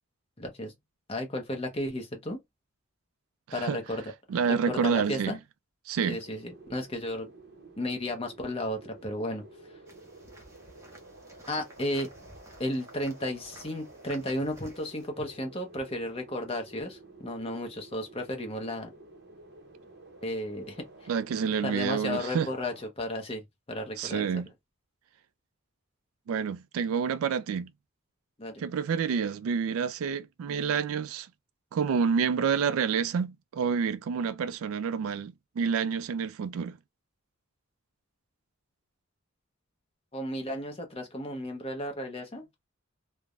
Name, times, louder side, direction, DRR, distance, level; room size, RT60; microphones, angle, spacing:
voice 1, 0.4-0.7 1.1-2.4 3.5-4.1 4.4-5.4 6.1-7.3 7.8-9.4 11.5-12.1 12.6-18.9 20.2-21.1 21.6-23.4 23.7-24.3 28.4-28.6 40.1-42.4, left 1 dB, 25° left, 0.7 m, -34 dB
voice 2, 4.3-5.4 5.9-6.2 21.1-22.5 24.0-24.5 26.3-27.7 28.6-31.3 31.7-36.8, right 6 dB, 75° right, 0.3 m, -28 dB
sound 1, 6.0-22.9, right 2 dB, 50° right, 0.7 m, -51 dB
sound 2, 9.9-15.1, equal, 15° right, 0.6 m, -53 dB
3.3 x 2.1 x 2.4 m
head